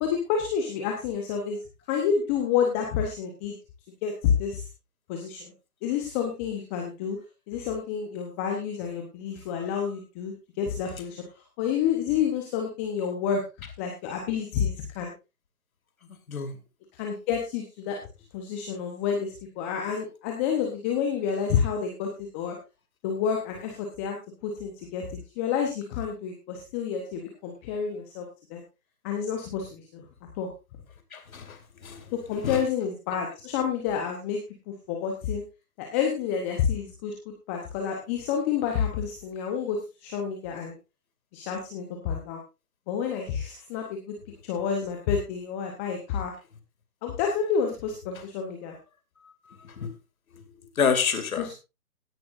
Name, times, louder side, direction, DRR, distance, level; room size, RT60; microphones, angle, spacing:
voice 1, 0.0-1.6 1.9-3.5 4.0-4.6 5.1-5.5 5.8-7.2 7.5-11.2 11.6-13.4 13.8-15.1 16.9-18.0 18.3-22.6 23.0-24.2 24.4-28.6 29.0-30.0 30.4-30.5 32.1-34.4 34.7-35.4 35.8-40.7 41.3-42.4 42.9-44.1 44.4-46.3 47.0-48.7 51.4-51.5, left 7 dB, 10° left, 2 dB, 0.8 m, -29 dB
voice 2, 31.1-32.1 32.4-32.6 49.6-49.9 50.8-51.5, left 6 dB, 60° left, 8 dB, 2.5 m, -28 dB
17.0 x 10.5 x 2.5 m, 0.27 s
figure-of-eight pair, 145°, 47 cm